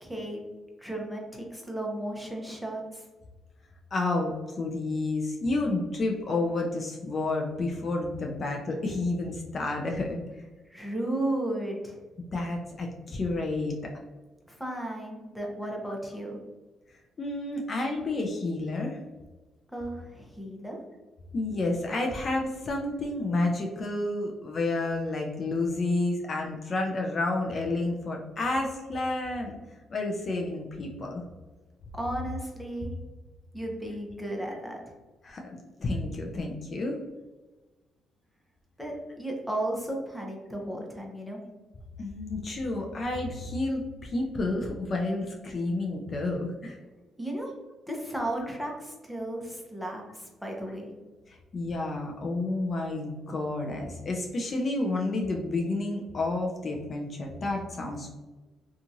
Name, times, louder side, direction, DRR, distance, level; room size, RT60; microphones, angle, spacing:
voice 1, 0.0-0.4 0.8-3.1 10.7-12.0 14.5-16.4 19.7-20.8 31.9-32.9 33.5-34.9 38.8-41.4 47.2-47.5 47.9-50.9, right 1 dB, ahead, 0 dB, 0.7 m, -34 dB
voice 2, 3.9-10.2 12.3-13.8 17.2-19.0 21.3-29.6 29.9-31.2 35.2-37.0 42.0-46.8 51.3-58.2, left 2 dB, 45° left, 1 dB, 0.4 m, -30 dB
2.8 x 2.4 x 2.6 m, 1.2 s
cardioid pair, 90°, 0 cm